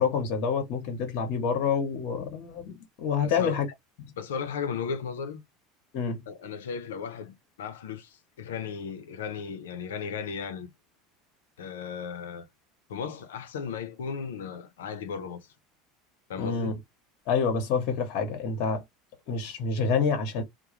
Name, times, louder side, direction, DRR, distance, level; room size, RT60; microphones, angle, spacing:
voice 1, 0.0-3.7 4.0-4.1 5.9-6.2 16.4-16.7 17.3-18.8 19.3-20.4, left 5 dB, 60° left, 1.0 m, -27 dB
voice 2, 3.2-3.6 4.2-5.4 6.3-10.7 11.6-12.5 12.9-15.5 16.3-16.8, left 6 dB, 90° left, 0.6 m, -35 dB
2.3 x 2.2 x 2.9 m
hypercardioid pair, 95°, 0 cm